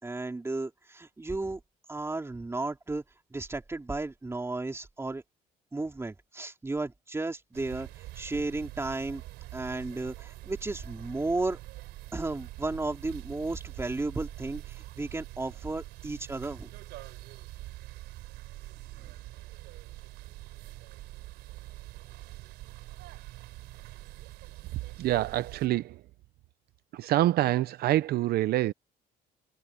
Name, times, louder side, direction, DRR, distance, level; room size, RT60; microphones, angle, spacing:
voice 1, 0.0-1.6 1.9-3.0 3.3-5.2 5.7-9.2 9.5-11.6 12.1-16.7 19.0-19.1, right 2 dB, 15° right, 3.6 m, -34 dB
sound 1, 7.5-25.7, right 17 dB, 90° right, 4.1 m, -45 dB
voice 2, 25.0-26.0 26.9-28.7, right 14 dB, 65° right, 0.6 m, -26 dB
cardioid pair, 110°, 17 cm